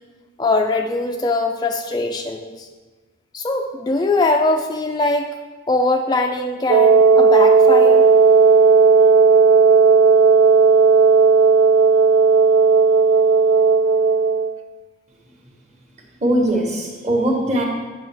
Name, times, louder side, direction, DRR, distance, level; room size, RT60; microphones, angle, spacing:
voice 1, 0.4-2.7 3.3-5.3 5.7-8.1, left 2 dB, 20° left, 3 dB, 0.3 m, -21 dB
Wind instrument woodwind instrument, 6.7-14.6, right 5 dB, 80° right, 0.4 m, -13 dB
voice 2, 16.2-17.6, right 1 dB, 35° right, 0 dB, 1.2 m, -20 dB
8.6 x 6.0 x 3.4 m, 1.3 s
head